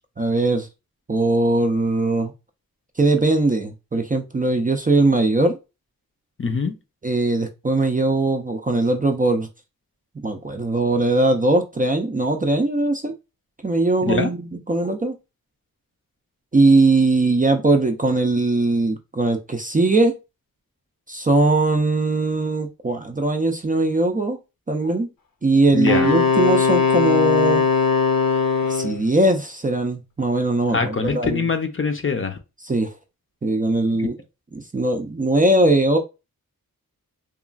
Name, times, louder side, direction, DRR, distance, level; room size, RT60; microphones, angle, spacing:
voice 1, 0.2-0.7 1.1-2.3 3.0-5.6 7.0-9.5 10.2-13.1 13.6-15.2 16.5-20.2 21.1-24.4 24.7-25.1 25.4-27.7 28.6-31.5 32.6-32.9 33.4-34.1 34.5-36.0, right 2 dB, 25° right, 0.4 m, -20 dB
voice 2, 6.4-6.8 14.1-14.3 25.7-26.1 30.7-32.4 34.0-34.1, left 4 dB, 35° left, 0.5 m, -23 dB
Wind instrument woodwind instrument, 25.9-29.0, left 5 dB, 70° left, 0.7 m, -19 dB
2.9 x 2.3 x 2.3 m
wide cardioid pair, 60°, 35 cm